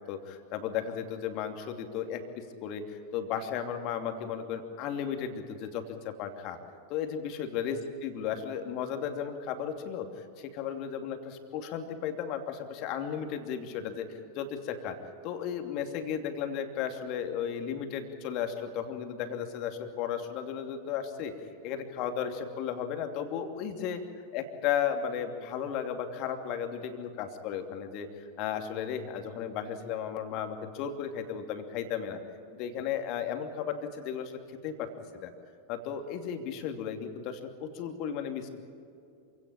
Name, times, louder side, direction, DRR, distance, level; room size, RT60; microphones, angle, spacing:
voice 1, 0.1-6.6 6.9-15.0 15.2-21.3 21.6-24.0 24.3-32.2 32.5-35.3 35.7-38.5, left 8 dB, 40° left, 6 dB, 2.8 m, -35 dB
27.0 x 17.5 x 8.9 m, 2.5 s
figure-of-eight pair, 90°, 0 cm